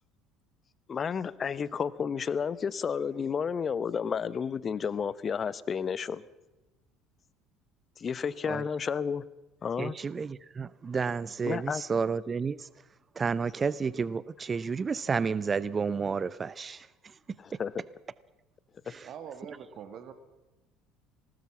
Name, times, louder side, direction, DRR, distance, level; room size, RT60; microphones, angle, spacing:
voice 1, 0.9-6.2 8.0-9.2 9.6-9.9 11.5-11.8 17.4-17.7, left 6 dB, 35° left, 1.0 m, -31 dB
voice 2, 9.8-12.7 13.2-17.2 18.9-19.1, right 5 dB, 30° right, 0.6 m, -31 dB
voice 3, 19.0-20.1, right 8 dB, 50° right, 1.8 m, -43 dB
19.5 x 18.5 x 7.2 m
figure-of-eight pair, 60°, 0 cm